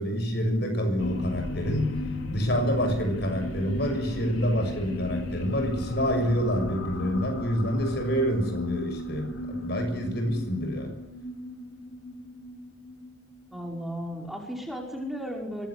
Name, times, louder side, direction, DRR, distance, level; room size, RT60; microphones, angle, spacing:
voice 1, 0.0-1.9 2.3-10.9, equal, 55° left, 6 dB, 6.8 m, -27 dB
sound 1, 1.0-13.8, left 1 dB, 80° left, 3.5 m, -36 dB
voice 2, 13.5-15.7, equal, ahead, -1 dB, 5.7 m, -35 dB
24.5 x 20.0 x 9.9 m, 0.81 s
head